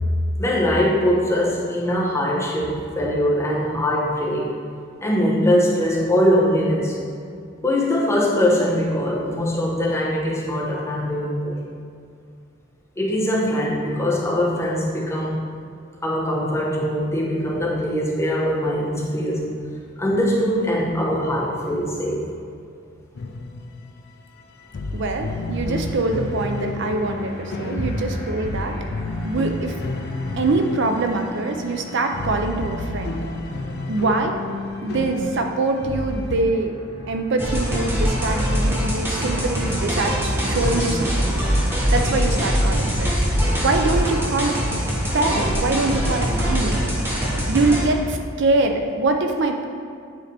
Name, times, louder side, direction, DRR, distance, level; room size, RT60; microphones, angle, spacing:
voice 1, 0.4-4.5 5.0-7.0 7.6-11.6 13.0-15.4 16.0-19.5 20.0-22.2 43.4-43.5, equal, 15° left, -5 dB, 1.0 m, -22 dB
sound 1, 23.1-24.1 24.4-24.5 24.7-36.4, left 2 dB, 50° left, 0.4 m, -31 dB
sound 2, 24.6-41.4, left 1 dB, 70° left, 1.5 m, -40 dB
voice 2, 24.9-28.7 29.2-29.8 30.4-33.1 33.9-34.4 34.8-36.8 37.1-41.4 41.9-43.1 43.6-44.6 45.1-46.8 47.5-49.6, right 3 dB, 55° right, 4 dB, 0.4 m, -23 dB
sound 3, 37.4-47.8, equal, 10° right, 1.1 m, -22 dB
9.3 x 3.9 x 3.3 m, 2.3 s
head